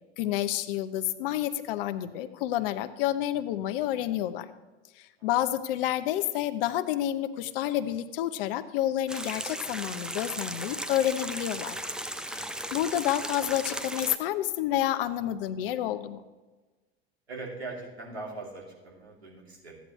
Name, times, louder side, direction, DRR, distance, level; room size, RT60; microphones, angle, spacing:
voice 1, 0.2-4.5 5.0-11.8 12.2-12.4 12.7-16.2, left 12 dB, 60° left, 12 dB, 0.8 m, -29 dB
sound 1, 9.1-14.2, right 1 dB, ahead, 0.5 m, -36 dB
voice 2, 12.3-12.8 17.3-19.8, right 3 dB, 90° right, -3 dB, 2.6 m, -41 dB
14.5 x 9.2 x 3.1 m, 1.2 s
figure-of-eight pair, 80°, 31 cm